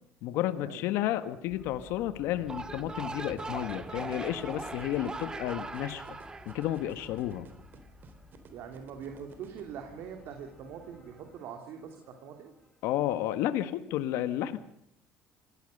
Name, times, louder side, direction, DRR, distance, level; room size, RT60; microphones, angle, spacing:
voice 1, 0.2-6.0 6.4-7.5 12.8-14.6, left 13 dB, 80° left, 11 dB, 1.5 m, -31 dB
sound 1, 1.4-13.4, left 2 dB, 10° left, 7.6 m, -55 dB
sound 2, 2.4-7.7, right 3 dB, 20° right, 1.5 m, -40 dB
sound 3, 3.4-9.6, right 7 dB, 50° right, 3.8 m, -53 dB
voice 2, 8.5-12.5, right 7 dB, 65° right, 4 dB, 3.2 m, -43 dB
26.5 x 17.5 x 6.7 m, 0.75 s
cardioid pair, 110°, 4 cm